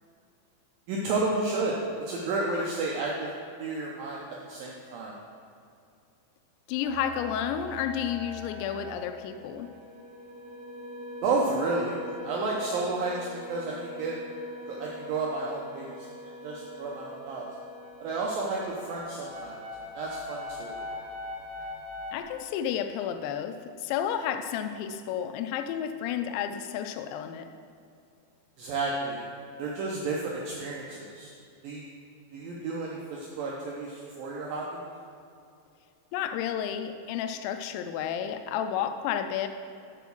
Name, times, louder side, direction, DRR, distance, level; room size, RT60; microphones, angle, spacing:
voice 1, 0.9-1.8 2.1-4.2 4.5-5.1 11.2-12.0 12.2-14.2 14.7-16.1 16.4-17.5 18.0-19.6 20.0-20.8 28.6-29.2 29.6-31.3 31.6-31.8 32.3-34.8, right 3 dB, 90° right, -3 dB, 2.0 m, -31 dB
voice 2, 6.7-9.7 12.1-12.3 22.1-27.5 29.6-29.7 36.1-39.5, left 9 dB, 85° left, 8 dB, 2.8 m, -31 dB
sound 1, 6.8-22.2, left 1 dB, 50° right, 2.7 m, -42 dB
8.1 x 4.6 x 6.9 m, 2.5 s
omnidirectional pair, 5.2 m